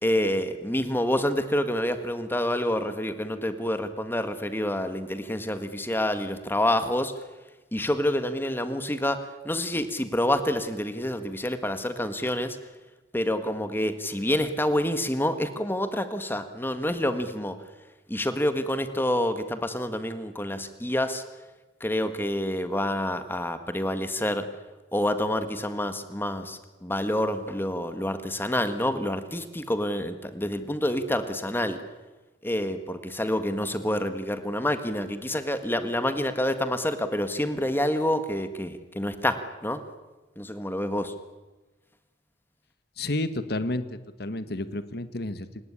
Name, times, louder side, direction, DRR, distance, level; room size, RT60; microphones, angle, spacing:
voice 1, 0.0-7.1 7.7-12.6 13.1-17.6 18.1-21.2 21.8-24.5 24.9-31.8 32.4-39.8 40.4-41.1, left 1 dB, 10° left, 10 dB, 1.7 m, -28 dB
voice 2, 43.0-43.8 44.2-45.6, left 1 dB, 65° left, 12 dB, 1.6 m, -30 dB
28.5 x 18.0 x 10.0 m, 1.2 s
head